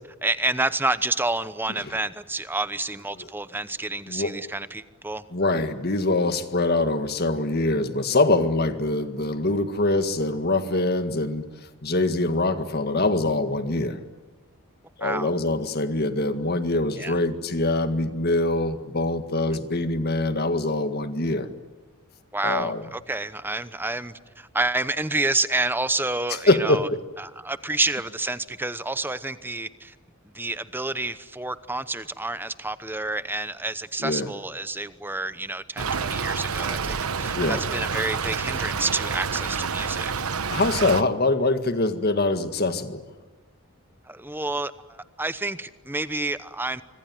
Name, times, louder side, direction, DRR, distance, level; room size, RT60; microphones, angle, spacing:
voice 1, 0.2-5.2 15.0-15.3 16.9-17.1 22.3-26.9 27.2-29.9 30.3-40.3 44.1-46.8, right 2 dB, 10° right, 13 dB, 0.9 m, -29 dB
voice 2, 5.3-11.5 11.8-14.0 15.0-21.5 22.4-22.8 26.3-27.0 34.0-34.3 37.4-37.6 40.5-43.0, left 2 dB, 45° left, 9 dB, 1.9 m, -24 dB
Stream / Trickle dribble, 35.8-41.0, right 5 dB, 85° right, 1.1 m, -28 dB
25.5 x 25.0 x 9.4 m, 1.3 s
head